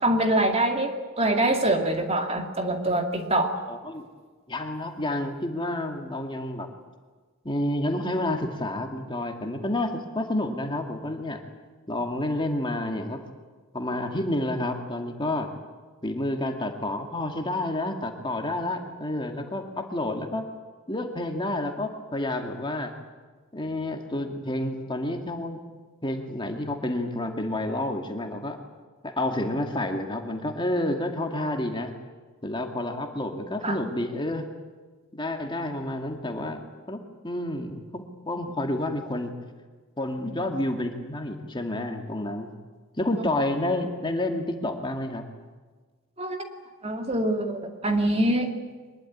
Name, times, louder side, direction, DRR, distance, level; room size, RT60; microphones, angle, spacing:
voice 1, 0.0-3.5 33.6-33.8 46.2-46.4 46.8-48.5, right 1 dB, 30° right, 4 dB, 2.4 m, -24 dB
voice 2, 3.7-4.0 4.5-6.7 7.4-11.4 11.9-13.2 13.7-15.5 16.0-20.4 20.9-22.9 23.5-25.6 26.0-28.6 29.0-31.9 32.4-34.5 35.1-36.6 36.9-39.3 40.0-42.5 43.0-45.2, left 1 dB, 20° left, 3 dB, 2.1 m, -29 dB
23.5 x 21.0 x 9.5 m, 1.4 s
head